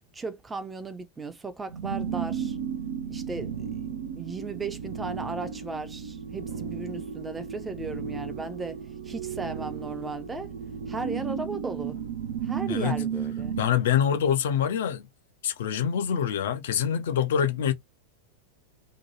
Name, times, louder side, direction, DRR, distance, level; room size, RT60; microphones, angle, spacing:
voice 1, 0.1-2.6 3.1-8.8 9.0-10.5 10.9-12.0 12.4-13.5, right 3 dB, 15° right, 0.5 m, -36 dB
sound 1, 1.7-13.7, right 7 dB, 60° right, 0.5 m, -34 dB
voice 2, 13.6-15.1 15.4-17.7, left 8 dB, 60° left, 0.5 m, -25 dB
2.7 x 2.2 x 2.9 m
figure-of-eight pair, 90°, 0 cm